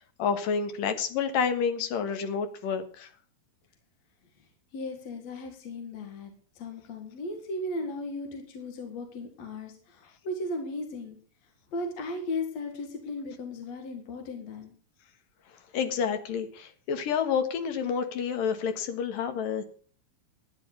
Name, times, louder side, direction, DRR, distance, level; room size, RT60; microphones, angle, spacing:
voice 1, 0.0-3.1 15.7-19.6, left 6 dB, 75° left, 8 dB, 3.1 m, -29 dB
voice 2, 4.7-11.2 11.7-14.7, left 2 dB, 55° left, 4 dB, 2.8 m, -36 dB
12.5 x 9.7 x 6.7 m, 0.43 s
omnidirectional pair, 4.0 m